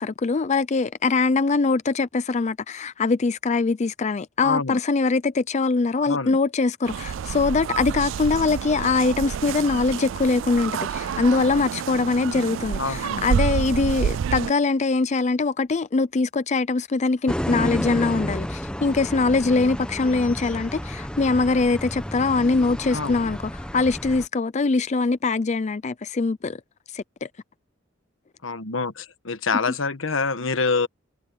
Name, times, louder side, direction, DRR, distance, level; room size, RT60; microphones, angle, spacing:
voice 1, 0.0-26.6 26.9-27.3, left 3 dB, 35° left, 0.5 m, -23 dB
voice 2, 4.4-4.8 6.1-6.4 12.8-13.2 22.9-23.1 28.4-30.9, left 4 dB, 90° left, 1.3 m, -26 dB
sound 1, 6.9-14.5, right 7 dB, 70° right, 0.3 m, -28 dB
sound 2, 17.3-24.3, equal, 5° left, 1.0 m, -31 dB
head